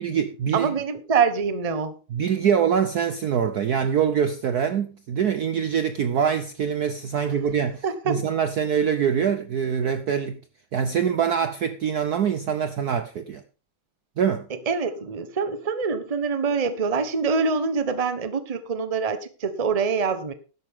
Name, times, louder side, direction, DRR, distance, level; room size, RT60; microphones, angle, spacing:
voice 1, 0.0-0.7 2.1-10.4 10.7-13.4 14.2-14.5, right 7 dB, 60° right, 1.0 m, -24 dB
voice 2, 0.5-2.0 7.8-8.2 14.7-20.3, right 5 dB, 25° right, 0.8 m, -25 dB
12.5 x 11.0 x 3.6 m
omnidirectional pair, 2.4 m